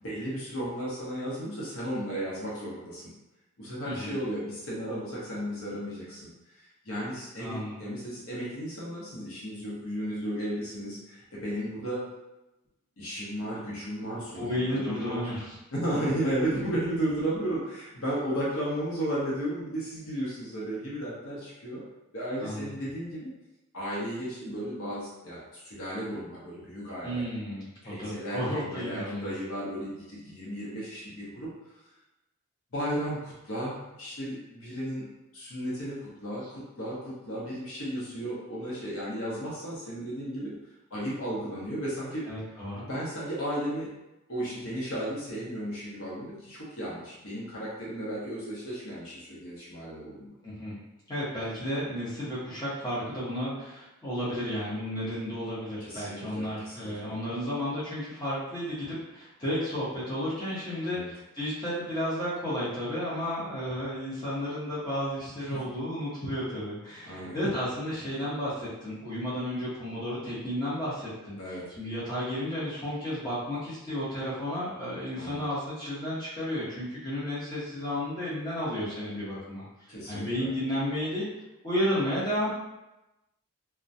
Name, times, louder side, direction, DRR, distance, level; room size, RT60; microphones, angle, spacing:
voice 1, 0.0-3.1 3.6-6.3 6.8-12.1 13.0-15.3 15.7-21.8 22.1-23.3 23.7-27.2 27.8-31.5 32.7-35.0 35.3-40.5 40.9-42.2 42.8-43.9 44.3-50.3 55.8-57.1 60.9-61.1 65.5-65.6 67.0-67.4 71.4-71.7 75.2-75.4 79.9-80.5, right 1 dB, 70° left, -7 dB, 0.8 m, -34 dB
voice 2, 3.8-4.1 7.4-7.8 14.3-15.6 22.4-22.7 27.0-29.3 42.3-42.8 50.4-50.8 51.1-79.6 80.1-81.3 81.6-82.5, equal, 20° left, -10 dB, 0.8 m, -32 dB
2.2 x 2.1 x 2.6 m, 0.96 s
head